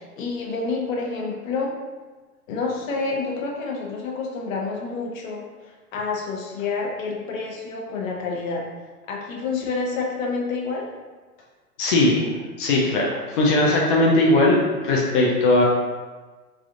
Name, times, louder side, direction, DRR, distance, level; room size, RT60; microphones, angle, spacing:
voice 1, 0.0-1.8 2.5-8.7 9.1-10.9, left 4 dB, 60° left, -1 dB, 0.8 m, -28 dB
voice 2, 11.8-12.3 12.6-14.6 14.8-15.6, left 2 dB, 35° left, -2 dB, 0.4 m, -19 dB
3.4 x 2.3 x 2.5 m, 1.3 s
hypercardioid pair, 115°, 46 cm